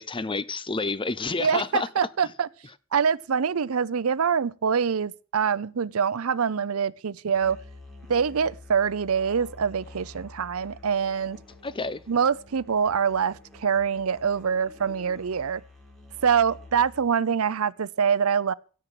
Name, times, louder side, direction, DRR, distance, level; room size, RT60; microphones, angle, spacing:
voice 1, 0.0-1.9 11.6-12.0, left 3 dB, 25° left, 0.7 m, -29 dB
voice 2, 1.4-2.5 2.9-7.6 8.1-11.4 12.1-15.6 16.2-18.5, right 6 dB, 90° right, 0.6 m, -25 dB
Musical instrument, 7.3-17.1, left 2 dB, ahead, 4.5 m, -48 dB
17.0 x 7.4 x 6.6 m
head